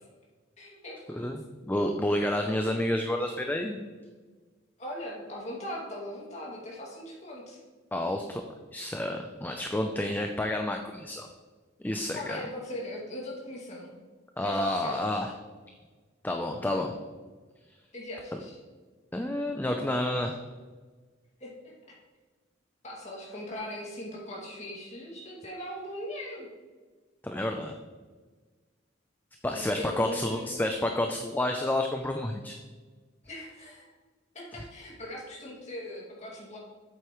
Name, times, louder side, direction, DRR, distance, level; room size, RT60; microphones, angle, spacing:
voice 1, 0.6-1.3 4.8-7.6 12.1-14.0 14.4-15.0 17.9-18.6 21.4-21.5 22.8-26.5 29.5-30.5 33.2-33.9 34.3-36.6, left 1 dB, 35° left, -4 dB, 2.3 m, -40 dB
voice 2, 1.1-1.4 1.7-3.8 7.9-8.4 8.7-11.3 11.8-12.4 14.4-15.3 16.2-16.9 19.1-20.4 27.2-27.7 29.4-32.6, left 1 dB, 10° left, 4 dB, 0.4 m, -29 dB
8.0 x 8.0 x 3.1 m, 1.4 s
head